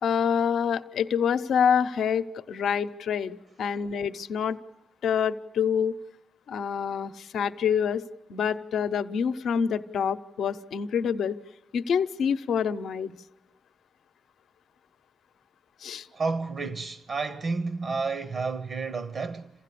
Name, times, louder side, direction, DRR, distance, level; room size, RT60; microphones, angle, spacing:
voice 1, 0.0-4.6 5.0-5.9 6.5-8.0 8.3-11.4 11.7-13.2 15.8-16.1, left 7 dB, 80° left, 0.7 m, -26 dB
voice 2, 16.1-19.5, right 4 dB, 60° right, 1.0 m, -31 dB
28.0 x 16.0 x 8.4 m
cardioid pair, 90°, 0 cm